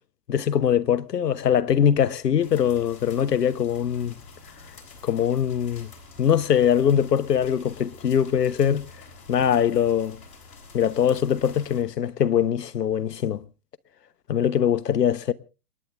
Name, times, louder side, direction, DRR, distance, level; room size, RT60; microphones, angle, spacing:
voice 1, 0.3-4.1 5.0-5.9 6.2-8.9 9.3-10.2 10.7-13.4 14.3-15.3, left 9 dB, 75° left, 1.2 m, -22 dB
sound 1, 2.4-11.8, left 3 dB, 60° left, 7.0 m, -47 dB
29.0 x 10.5 x 3.5 m
hypercardioid pair, 135°, 49 cm